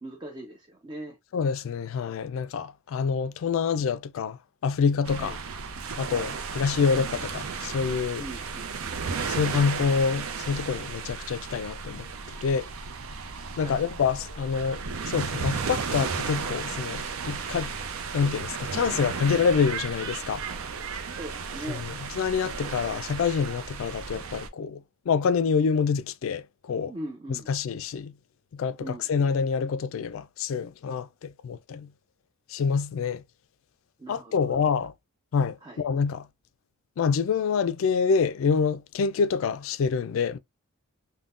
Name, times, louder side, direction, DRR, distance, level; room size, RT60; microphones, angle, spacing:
voice 1, 0.0-1.2 5.2-5.4 6.1-6.4 8.2-9.0 13.6-13.9 21.1-21.9 26.9-27.5 28.8-29.1 34.0-34.6 35.6-35.9, right 1 dB, 20° right, 0.5 m, -41 dB
voice 2, 1.3-4.4 4.6-5.4 6.0-8.2 9.3-12.1 12.4-12.7 13.6-17.7 18.1-20.4 21.7-26.9 27.5-28.1 28.5-31.9 32.5-33.2 34.1-34.9 35.3-36.3 37.0-40.4, left 6 dB, 65° left, 0.3 m, -27 dB
sound 1, 5.0-24.5, right 5 dB, 70° right, 0.5 m, -34 dB
3.6 x 2.1 x 2.5 m
head